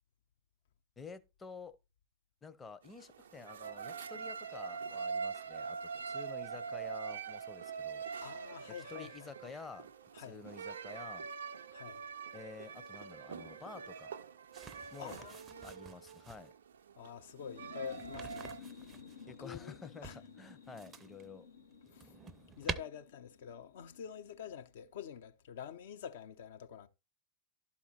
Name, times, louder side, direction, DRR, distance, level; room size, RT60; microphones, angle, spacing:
voice 1, 1.0-1.7 2.4-8.1 8.9-9.9 10.2-11.3 12.3-14.1 14.9-15.2 15.6-16.5 19.3-21.5, left 4 dB, 15° left, 0.8 m, -50 dB
sound 1, 2.8-18.6, right 6 dB, 65° right, 0.5 m, -44 dB
voice 2, 8.2-9.1 10.1-10.4 11.7-12.0 15.0-15.7 17.0-18.5 19.4-19.8 20.0-20.2 21.9-22.1 22.6-26.9, left 8 dB, 55° left, 0.8 m, -47 dB
sound 2, 14.5-16.5 17.9-19.2 20.0-21.3 21.7-22.8, right 6 dB, 20° right, 0.6 m, -46 dB
sound 3, 17.3-24.8, left 6 dB, 80° left, 1.2 m, -54 dB
12.0 x 4.3 x 4.3 m
figure-of-eight pair, 90°, 0 cm